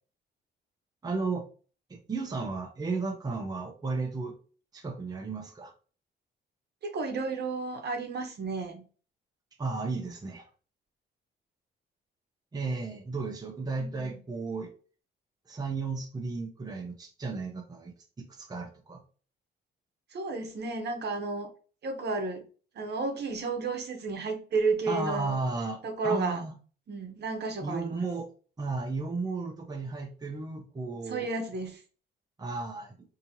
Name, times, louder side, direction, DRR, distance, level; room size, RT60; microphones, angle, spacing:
voice 1, 1.0-1.4 1.9-4.4 4.7-5.7 9.6-10.5 12.5-14.7 15.5-17.9 18.2-19.0 24.9-26.5 27.6-28.3 28.6-31.3 32.4-33.0, right 3 dB, 20° right, 0.7 m, -34 dB
voice 2, 6.8-8.8 13.7-14.2 20.1-21.5 21.8-22.5 22.7-25.4 25.8-26.4 26.9-28.0 31.1-31.8, right 3 dB, 55° right, 1.0 m, -32 dB
4.2 x 2.9 x 2.8 m
cardioid pair, 90°, 20 cm